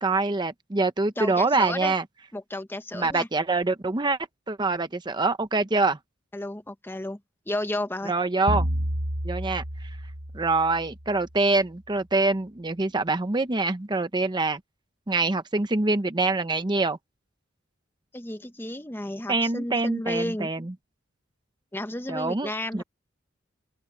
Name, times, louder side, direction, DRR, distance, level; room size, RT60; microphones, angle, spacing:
voice 1, 0.0-2.0 2.9-4.2 4.5-6.0 8.1-8.7 9.2-9.6 10.3-14.6 15.1-17.0 19.3-20.7 22.1-22.8, right 3 dB, 20° right, 0.7 m, -25 dB
voice 2, 1.2-1.9 2.3-3.3 6.3-7.2 7.5-8.1 18.1-20.5 21.7-22.8, left 1 dB, 10° left, 1.0 m, -32 dB
sound 1, 8.5-11.2, equal, 75° right, 4.8 m, -30 dB
open air
head